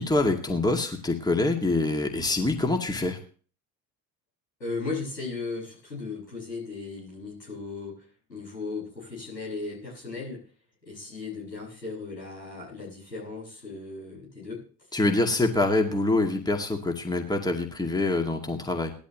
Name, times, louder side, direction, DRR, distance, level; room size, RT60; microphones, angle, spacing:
voice 1, 0.0-3.2 14.9-18.9, left 2 dB, 10° left, 3 dB, 2.3 m, -25 dB
voice 2, 4.6-7.9 8.3-10.4 10.8-14.6, left 3 dB, 85° left, -4 dB, 6.6 m, -36 dB
18.5 x 12.5 x 3.1 m, 0.42 s
figure-of-eight pair, 55°, 49 cm